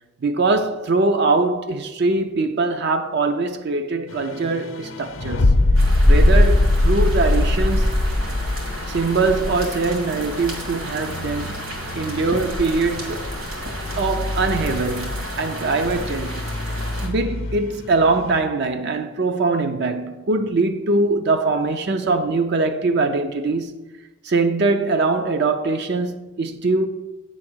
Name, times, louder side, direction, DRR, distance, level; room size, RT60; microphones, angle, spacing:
voice 1, 0.2-5.6 6.0-7.9 8.9-11.6 11.9-13.3 14.0-16.5 17.0-23.8 24.2-26.9, right 3 dB, 50° right, 0.5 m, -22 dB
sound 1, 4.1-18.4, left 2 dB, 65° left, 0.7 m, -24 dB
sound 2, 5.7-17.1, equal, 75° right, 2.0 m, -25 dB
8.3 x 3.8 x 6.1 m
head